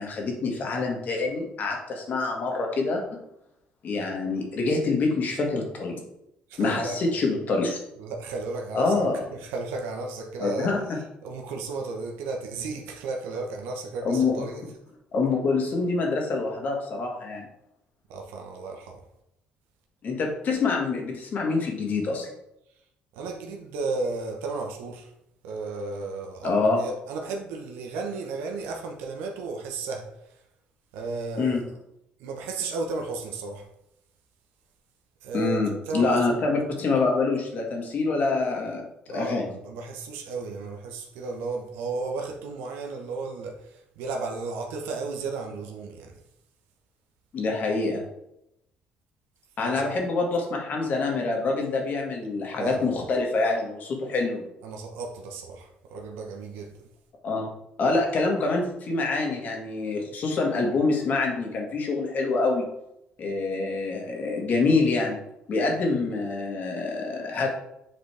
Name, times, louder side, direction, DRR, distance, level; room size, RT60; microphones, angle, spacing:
voice 1, 0.0-3.0 3.8-6.0 6.6-7.8 8.7-9.3 10.4-11.0 14.0-14.5 15.1-17.5 20.0-22.3 26.4-26.8 31.4-31.6 35.3-38.8 39.1-39.5 47.3-48.1 49.6-54.4 57.2-57.5 57.8-62.7 63.2-65.2 65.5-67.5, left 3 dB, 50° left, 1 dB, 1.8 m, -26 dB
voice 2, 6.5-7.0 8.0-9.0 9.3-10.7 11.2-14.7 18.1-19.0 23.1-25.1 25.4-30.1 30.9-31.6 32.2-33.6 35.2-36.4 39.1-46.1 49.6-49.9 52.6-52.8 54.6-56.7, right 3 dB, 90° right, 2 dB, 1.0 m, -34 dB
7.7 x 4.0 x 3.4 m, 0.83 s
cardioid pair, 105°, 4 cm